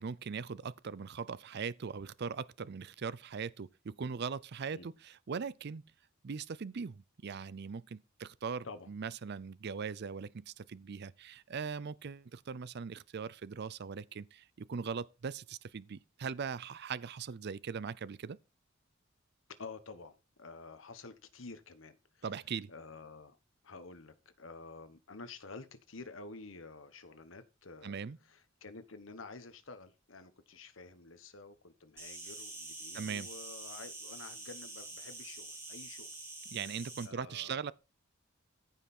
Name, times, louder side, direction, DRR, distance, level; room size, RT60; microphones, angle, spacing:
voice 1, 0.0-5.8 6.2-18.4 22.2-22.7 27.8-28.2 32.9-33.3 36.5-37.7, right 6 dB, 55° right, 0.5 m, -40 dB
voice 2, 19.6-22.2 22.7-23.4 23.6-36.1 37.0-37.6, left 3 dB, 70° left, 1.2 m, -50 dB
Insect, 32.0-37.1, right 2 dB, 15° right, 2.8 m, -46 dB
14.0 x 5.7 x 4.3 m
head